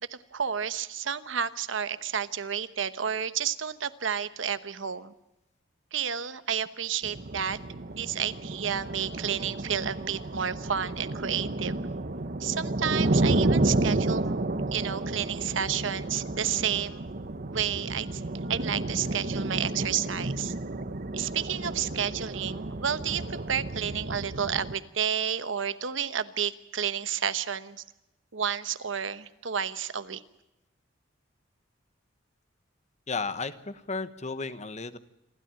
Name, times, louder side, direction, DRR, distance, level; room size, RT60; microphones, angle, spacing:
voice 1, 0.1-5.1 5.9-7.6 7.9-11.7 12.4-14.4 14.7-17.0 17.5-18.2 18.5-20.5 21.1-27.8 28.3-30.2, right 8 dB, 70° right, 13 dB, 1.0 m, -31 dB
sound 1, 7.0-24.8, right 2 dB, 50° right, 1.0 m, -31 dB
voice 2, 33.1-35.0, left 4 dB, 35° left, 13 dB, 1.1 m, -34 dB
28.0 x 12.5 x 9.0 m, 0.94 s
head